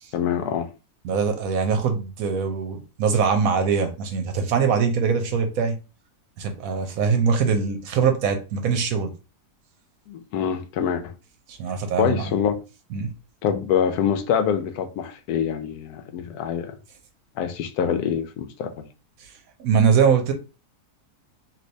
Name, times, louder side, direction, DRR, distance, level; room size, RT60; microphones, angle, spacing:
voice 1, 0.1-0.7 10.1-11.1 12.0-12.5 13.4-16.7 17.4-18.7, left 8 dB, 80° left, 1.1 m, -25 dB
voice 2, 1.0-5.7 6.4-9.1 11.5-12.3 12.9-13.1 19.2-19.3 19.6-20.3, right 6 dB, 70° right, 1.0 m, -22 dB
3.2 x 2.8 x 2.6 m
omnidirectional pair, 1.6 m